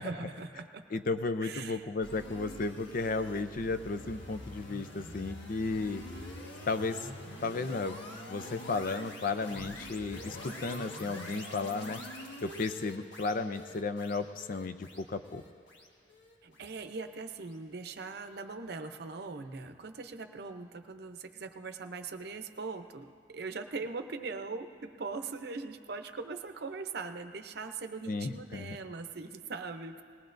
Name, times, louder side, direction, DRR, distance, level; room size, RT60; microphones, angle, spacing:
voice 1, 0.0-1.0 1.4-1.9 16.4-30.0, right 4 dB, 60° right, 7 dB, 0.7 m, -41 dB
voice 2, 0.9-6.0 6.7-7.1 7.4-8.0 8.3-12.0 12.4-15.4 28.1-28.8, left 3 dB, 50° left, 10 dB, 0.5 m, -34 dB
sound 1, 2.0-17.2, left 1 dB, 90° left, 1.5 m, -45 dB
20.0 x 18.0 x 2.6 m, 2.3 s
head